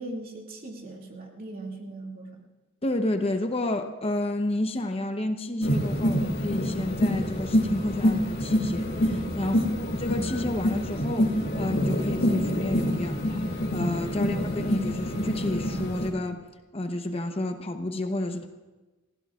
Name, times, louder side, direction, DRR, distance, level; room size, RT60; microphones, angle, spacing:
voice 1, 0.0-2.4, right 2 dB, 50° right, 0 dB, 2.3 m, -39 dB
voice 2, 2.8-13.4 13.7-16.4 16.7-18.5, left 1 dB, 30° left, 6 dB, 0.8 m, -30 dB
sound 1, 5.6-16.1, equal, 55° left, 2.4 m, -26 dB
30.0 x 16.0 x 2.4 m, 1.2 s
head